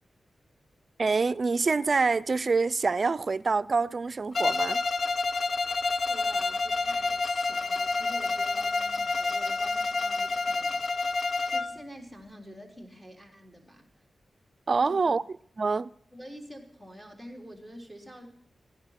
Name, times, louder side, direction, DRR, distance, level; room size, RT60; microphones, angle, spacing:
voice 1, 1.0-4.8 14.7-15.2 15.6-15.9, right 4 dB, 50° right, 0.4 m, -26 dB
Bowed string instrument, 4.3-11.8, left 3 dB, 55° left, 0.5 m, -28 dB
voice 2, 6.1-10.8 11.5-13.9 14.9-15.1 16.1-18.3, equal, ahead, 3.7 m, -47 dB
15.5 x 10.5 x 5.8 m
cardioid pair, 60°, 0 cm